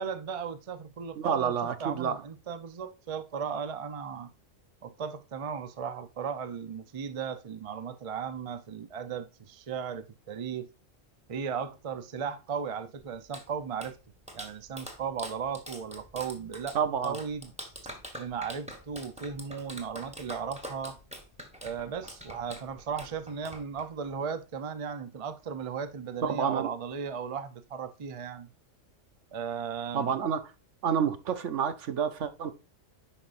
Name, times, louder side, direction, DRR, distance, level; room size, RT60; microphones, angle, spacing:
voice 1, 0.0-1.5 1.8-4.3 4.8-10.7 11.3-14.0 14.3-17.5 18.2-21.0 21.6-28.5 29.3-30.2, right 6 dB, 35° right, 0.6 m, -36 dB
voice 2, 1.2-2.2 16.7-17.2 26.2-26.7 29.9-30.4 30.8-32.5, right 7 dB, 70° right, 1.1 m, -29 dB
Clapping, 13.0-24.1, equal, 5° right, 1.4 m, -45 dB
10.0 x 5.3 x 2.6 m
omnidirectional pair, 1.3 m